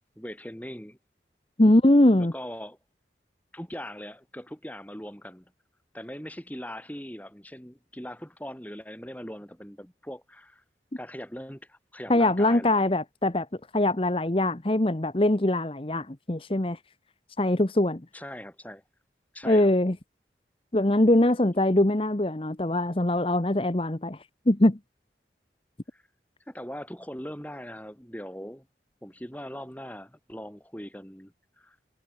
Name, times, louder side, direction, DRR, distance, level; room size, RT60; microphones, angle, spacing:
voice 1, 0.1-1.0 1.6-1.7 2.2-2.8 3.5-5.5 5.9-10.6 11.0-12.9 18.1-18.8 19.3-19.7 25.9-26.0 26.5-28.7 29.0-31.7, equal, 10° left, 5.2 m, -40 dB
voice 2, 1.6-2.3 12.1-13.5 13.7-16.8 17.4-18.0 19.4-20.0 20.7-24.8, left 1 dB, 30° left, 1.0 m, -22 dB
head